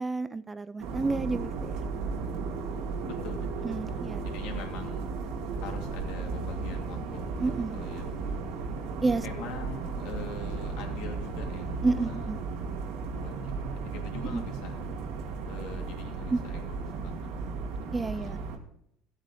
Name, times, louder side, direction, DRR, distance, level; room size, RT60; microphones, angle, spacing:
voice 1, 0.0-1.9 3.6-4.2 7.4-7.8 9.0-9.4 11.8-12.4 14.2-14.4 16.3-16.4 17.9-18.4, right 3 dB, 15° right, 15 dB, 0.4 m, -30 dB
sound 1, 0.8-18.6, right 4 dB, 75° right, 2.1 m, -35 dB
voice 2, 3.0-5.0 5.6-8.2 9.2-12.3 13.0-14.7 15.5-17.1 18.1-18.4, left 5 dB, 75° left, 2 dB, 2.8 m, -44 dB
15.0 x 8.9 x 3.6 m, 0.73 s
cardioid pair, 145°, 0 cm